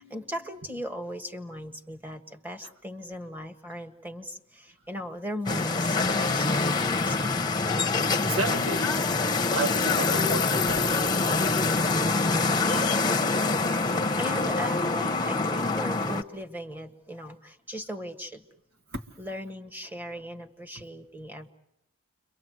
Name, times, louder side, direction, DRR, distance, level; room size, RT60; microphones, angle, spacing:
voice 1, 0.0-7.5 13.8-18.4 19.2-21.5, equal, 10° right, 1.5 m, -38 dB
sound 1, 5.5-16.2, left 3 dB, 20° left, 0.9 m, -25 dB
voice 2, 8.2-9.0 9.5-11.7 18.9-19.0, right 2 dB, 60° right, 1.6 m, -32 dB
29.5 x 24.0 x 7.9 m
head